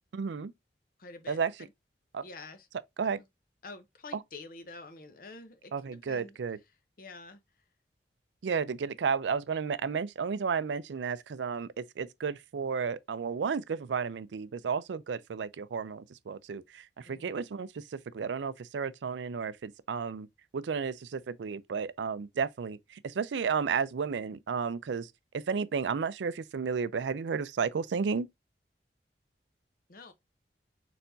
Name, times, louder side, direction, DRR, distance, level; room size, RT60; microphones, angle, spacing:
voice 1, 0.1-0.5 1.3-1.5 2.1-2.2 3.0-3.2 4.1-4.2 5.7-6.6 8.4-20.3 20.5-28.3, right 6 dB, 85° right, 0.4 m, -33 dB
voice 2, 1.0-1.7 2.2-2.7 3.6-6.4 7.0-7.4 17.1-17.3 29.9-30.1, left 3 dB, 50° left, 0.8 m, -48 dB
4.3 x 4.1 x 2.6 m
head